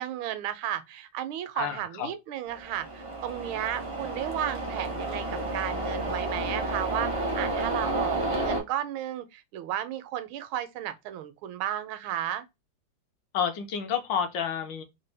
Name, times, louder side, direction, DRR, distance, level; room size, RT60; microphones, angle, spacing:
voice 1, 0.0-12.4, right 11 dB, 85° right, 1.4 m, -33 dB
voice 2, 1.6-2.1 13.3-14.8, left 8 dB, 70° left, 1.4 m, -30 dB
sound 1, 2.5-8.6, right 2 dB, 40° right, 0.4 m, -31 dB
4.0 x 2.1 x 3.3 m
omnidirectional pair, 2.2 m